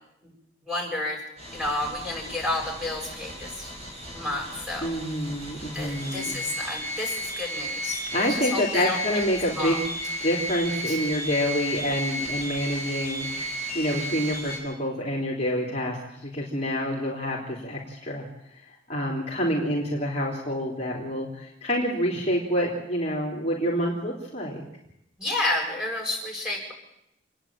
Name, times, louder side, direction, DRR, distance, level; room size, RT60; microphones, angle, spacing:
voice 1, 0.6-1.2 1.5-3.7 4.1-5.0 5.7-9.0 9.6-9.8 10.9-11.0 25.2-26.7, left 2 dB, 5° right, -4 dB, 7.5 m, -30 dB
sound 1, 1.4-14.6, equal, 35° right, 6.5 m, -34 dB
voice 2, 4.8-6.4 8.1-9.9 10.2-18.3 18.9-24.6, equal, 35° left, -3 dB, 3.6 m, -27 dB
28.5 x 10.0 x 8.9 m, 0.81 s
head